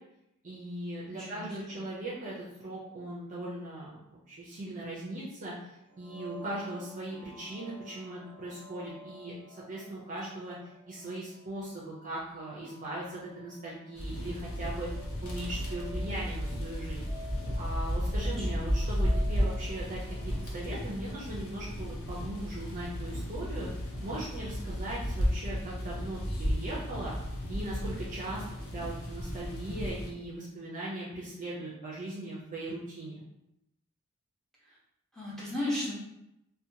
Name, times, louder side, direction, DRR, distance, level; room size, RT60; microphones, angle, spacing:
voice 1, 0.4-5.5 6.0-9.3 9.7-10.6 10.9-14.9 15.2-17.1 17.6-23.7 24.0-27.1 27.5-33.2, right 1 dB, 35° right, -6 dB, 0.5 m, -39 dB
voice 2, 1.1-1.8 18.2-18.7 34.6-34.8 35.1-35.9, left 1 dB, ahead, -6 dB, 0.7 m, -36 dB
sound 1, 5.9-21.5, equal, 35° left, 1.2 m, -51 dB
sound 2, 14.0-30.1, equal, 75° left, 0.6 m, -33 dB
2.7 x 2.1 x 2.7 m, 0.86 s
head